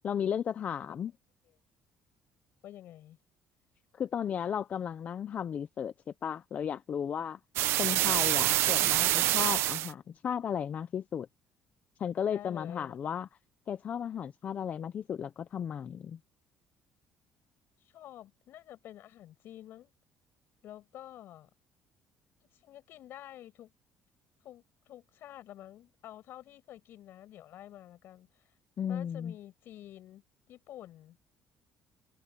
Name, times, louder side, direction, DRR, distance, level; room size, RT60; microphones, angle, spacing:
voice 1, 0.0-1.1 4.0-5.9 6.2-7.4 7.7-11.3 12.0-13.3 13.7-16.2 28.8-29.3, left 8 dB, 40° left, 0.6 m, -34 dB
voice 2, 2.6-3.2 12.3-12.9 17.8-19.9 20.6-21.5 22.5-23.7 24.4-28.5 28.9-30.2 30.5-31.2, left 12 dB, 60° left, 7.2 m, -49 dB
sound 1, 7.6-9.9, right 15 dB, 80° right, 1.1 m, -26 dB
cardioid pair, 145°, 4 cm